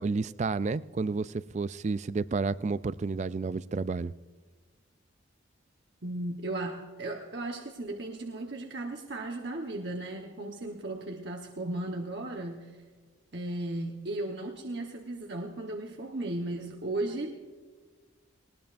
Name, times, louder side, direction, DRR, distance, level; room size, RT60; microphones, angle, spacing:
voice 1, 0.0-4.1, right 4 dB, 35° right, 16 dB, 0.3 m, -31 dB
voice 2, 6.0-12.8 13.3-17.4, right 2 dB, 60° right, 1 dB, 1.1 m, -36 dB
20.0 x 19.5 x 2.5 m, 1.4 s
head